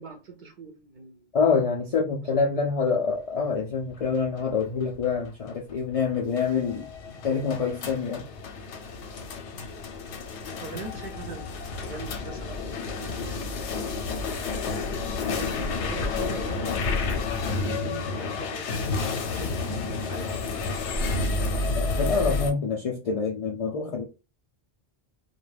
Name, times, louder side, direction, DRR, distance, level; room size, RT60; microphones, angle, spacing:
voice 1, 0.0-1.4 2.2-2.6 10.5-14.7 15.3-20.9, right 4 dB, 55° right, 0.6 m, -42 dB
voice 2, 1.3-6.9 7.2-8.3 21.7-24.1, left 5 dB, 65° left, 0.3 m, -26 dB
sound 1, 3.9-22.5, left 3 dB, 85° left, 0.9 m, -30 dB
2.3 x 2.1 x 3.2 m
omnidirectional pair, 1.1 m